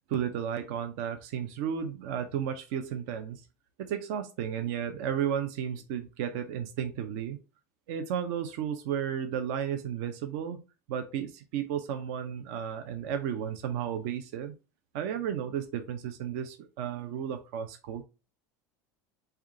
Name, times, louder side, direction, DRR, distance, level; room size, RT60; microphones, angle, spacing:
voice 1, 0.1-3.4 3.8-7.4 7.9-10.6 10.9-14.5 14.9-18.0, right 8 dB, 70° right, 7 dB, 0.5 m, -33 dB
3.5 x 2.8 x 3.5 m, 0.31 s
supercardioid pair, 105°, 9 cm